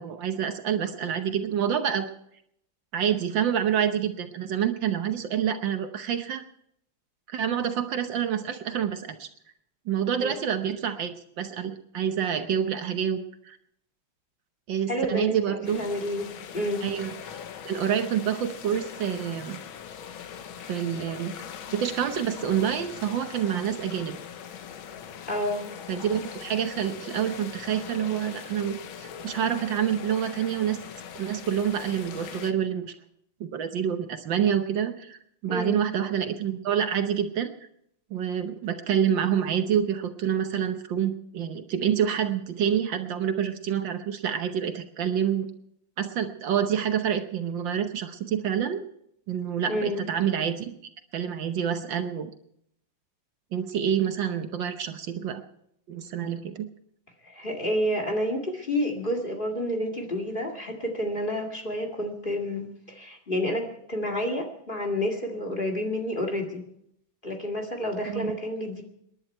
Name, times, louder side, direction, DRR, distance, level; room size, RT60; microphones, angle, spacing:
voice 1, 0.0-2.1 2.9-6.4 7.3-9.3 9.9-13.2 13.4-13.6 14.7-15.8 16.8-17.1 17.6-19.6 20.7-21.4 21.7-24.2 25.9-30.8 31.1-32.9 33.4-37.5 38.1-45.5 46.0-48.8 49.3-50.7 51.1-52.3 53.5-55.4 55.9-56.7 68.1-68.3, right 8 dB, 70° right, 8 dB, 1.6 m, -27 dB
voice 2, 14.9-16.9 25.3-25.7 35.4-35.8 49.7-50.1 57.2-66.6 67.2-68.8, equal, 25° left, 3 dB, 2.2 m, -29 dB
sound 1, 15.6-32.5, left 8 dB, 80° left, 1.8 m, -41 dB
28.0 x 11.0 x 4.5 m, 0.73 s
omnidirectional pair, 2.2 m